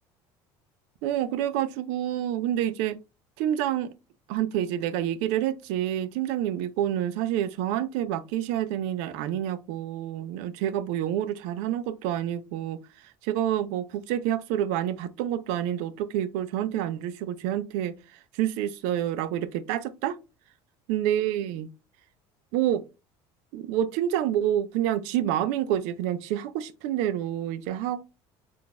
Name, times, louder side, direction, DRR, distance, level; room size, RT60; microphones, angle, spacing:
voice 1, 1.0-3.0 3.4-3.9 4.3-12.8 13.2-17.9 18.3-20.2 20.9-21.7 22.5-22.8 23.5-28.0, right 11 dB, 80° right, 0.5 m, -28 dB
5.8 x 2.5 x 2.2 m
cardioid pair, 115°, 12 cm